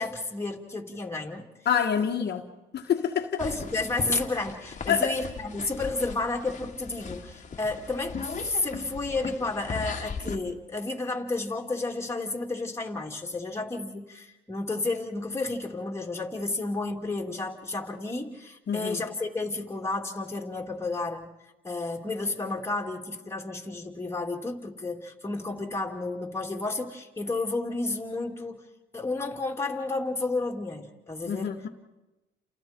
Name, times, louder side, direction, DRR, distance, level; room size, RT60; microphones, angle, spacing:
voice 1, 0.0-1.5 3.4-21.3 21.6-28.6 28.9-31.6, left 3 dB, 15° left, 0 dB, 2.9 m, -31 dB
voice 2, 1.6-2.4 2.7-3.4 4.9-5.1 18.7-19.0 31.2-31.7, left 8 dB, 55° left, 2 dB, 1.5 m, -26 dB
sound 1, 3.4-10.4, left 5 dB, 40° left, 1.8 m, -38 dB
30.0 x 28.5 x 4.5 m, 1.1 s
cardioid pair, 90°, 20 cm